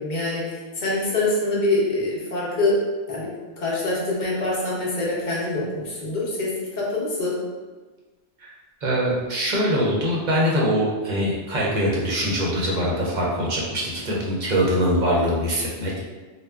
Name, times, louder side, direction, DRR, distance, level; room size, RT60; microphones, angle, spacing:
voice 1, 0.0-2.8 3.1-7.4, left 2 dB, 50° left, -5 dB, 0.8 m, -25 dB
voice 2, 8.8-16.0, equal, 50° right, -4 dB, 0.7 m, -23 dB
3.3 x 2.2 x 2.3 m, 1.3 s
omnidirectional pair, 1.1 m